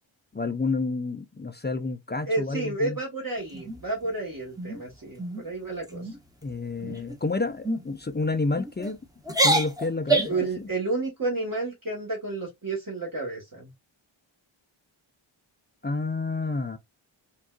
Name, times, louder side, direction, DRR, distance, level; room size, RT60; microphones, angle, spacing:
voice 1, 0.3-3.0 6.4-9.0 9.4-10.7 15.8-16.8, left 3 dB, 25° left, 0.3 m, -29 dB
voice 2, 2.3-6.1 10.3-13.7, right 2 dB, 40° right, 1.2 m, -31 dB
sound 1, 3.5-4.1 4.6-4.8 5.2-5.5 5.8-6.2 6.8-7.2 7.6-7.8 8.5-8.9 9.2-10.5, right 2 dB, 10° right, 0.7 m, -27 dB
3.6 x 2.3 x 2.2 m
wide cardioid pair, 45°, 49 cm